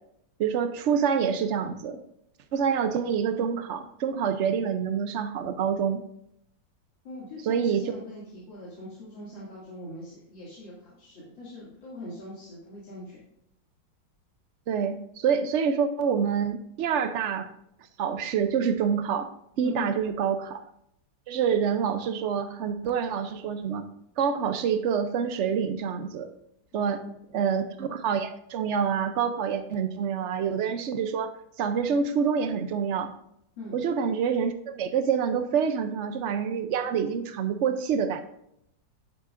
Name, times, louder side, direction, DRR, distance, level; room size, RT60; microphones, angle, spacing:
voice 1, 0.4-2.0 2.5-6.0 7.4-7.8 14.7-17.5 18.0-19.3 19.6-20.6 21.3-23.9 24.2-26.3 26.7-27.0 27.3-33.1 33.7-38.2, right 7 dB, 80° right, 8 dB, 0.6 m, -27 dB
voice 2, 7.0-13.2 19.6-19.9 26.7-27.6 33.6-33.8, left 2 dB, 85° left, -8 dB, 3.1 m, -42 dB
11.0 x 8.7 x 2.5 m, 0.77 s
omnidirectional pair, 2.0 m